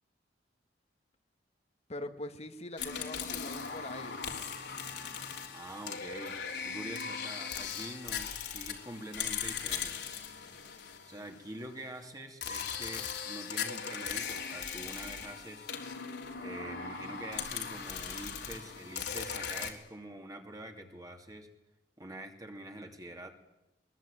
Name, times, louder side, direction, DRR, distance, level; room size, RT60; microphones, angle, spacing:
voice 1, 1.9-4.2, left 2 dB, 40° left, 8 dB, 1.8 m, -43 dB
sound 1, 2.8-11.6 12.4-19.7, left 7 dB, 70° left, 3.5 m, -39 dB
voice 2, 5.5-10.0 11.1-15.7 16.4-21.5 22.0-23.3, right 1 dB, 20° right, 4 dB, 2.7 m, -45 dB
22.5 x 21.5 x 9.0 m, 0.90 s
head